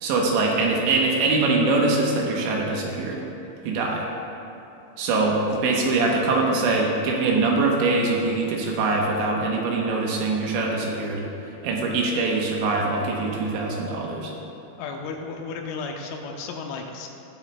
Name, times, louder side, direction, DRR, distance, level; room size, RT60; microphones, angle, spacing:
voice 1, 0.0-3.2 3.6-4.0 5.0-11.2 11.6-14.3, right 3 dB, 75° right, -1 dB, 3.0 m, -23 dB
voice 2, 14.8-17.1, left 4 dB, 80° left, 2 dB, 3.1 m, -33 dB
19.0 x 8.2 x 2.2 m, 2.9 s
omnidirectional pair, 5.6 m